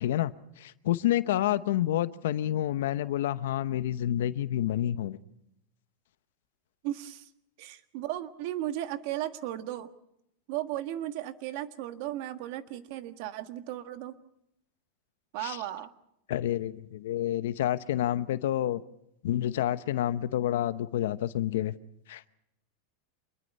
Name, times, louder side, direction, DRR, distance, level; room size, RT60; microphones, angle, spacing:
voice 1, 0.0-5.2 15.4-15.6 16.3-18.8 19.2-21.7 22.1-22.3, left 12 dB, 80° left, 14 dB, 0.9 m, -29 dB
voice 2, 6.8-7.3 7.6-9.9 10.5-14.1 15.3-15.9, right 13 dB, 55° right, 9 dB, 1.6 m, -35 dB
27.0 x 21.5 x 5.5 m, 0.79 s
supercardioid pair, 150°, 0 cm